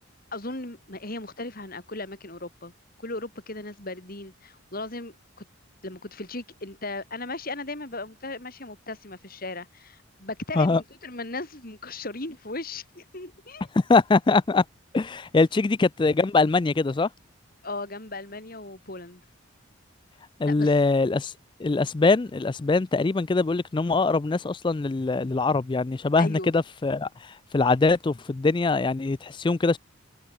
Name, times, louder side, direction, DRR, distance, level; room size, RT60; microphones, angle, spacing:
voice 1, 0.3-2.7 3.0-5.5 5.8-13.7 17.6-19.2 20.5-20.8 26.2-26.5, left 2 dB, 45° left, 3.7 m, -37 dB
voice 2, 13.9-14.6 14.9-17.1 20.4-21.3 21.6-27.1 27.5-29.8, left 3 dB, 25° left, 0.3 m, -22 dB
head